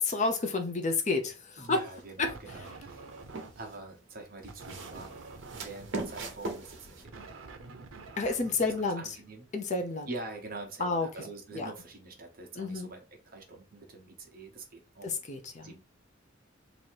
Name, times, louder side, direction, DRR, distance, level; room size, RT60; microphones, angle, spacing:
voice 1, 0.0-1.8 2.2-2.3 8.2-9.0 9.5-10.1 10.8-11.1 11.5-11.7 12.6-12.9 15.0-15.7, left 3 dB, 35° left, 0.6 m, -30 dB
voice 2, 1.6-3.1 3.5-5.2 5.5-7.3 8.8-9.5 10.1-15.1 15.6-15.8, right 2 dB, 45° right, 1.1 m, -45 dB
sound 1, 1.6-2.0 2.6-3.8 4.4-7.0, right 2 dB, 70° right, 1.1 m, -40 dB
sound 2, 2.2-3.8 4.4-9.6, right 3 dB, 85° right, 0.7 m, -48 dB
3.0 x 2.7 x 4.5 m
head